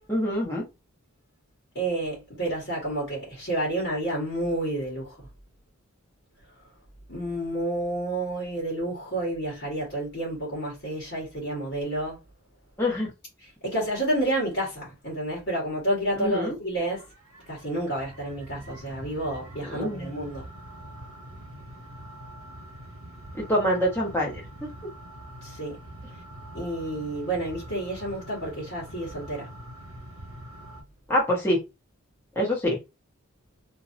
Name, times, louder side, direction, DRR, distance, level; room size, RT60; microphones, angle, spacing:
voice 1, 0.1-0.6 12.8-13.1 16.2-16.6 19.6-20.1 23.4-24.7 31.1-31.6 32.3-32.8, equal, 10° left, 1.2 m, -25 dB
voice 2, 1.7-5.2 7.1-12.2 13.6-17.0 17.5-20.5 25.4-25.8 26.5-29.5, right 1 dB, 55° left, 1.4 m, -30 dB
sound 1, 16.8-30.8, right 1 dB, 80° right, 1.2 m, -44 dB
2.8 x 2.7 x 2.6 m
head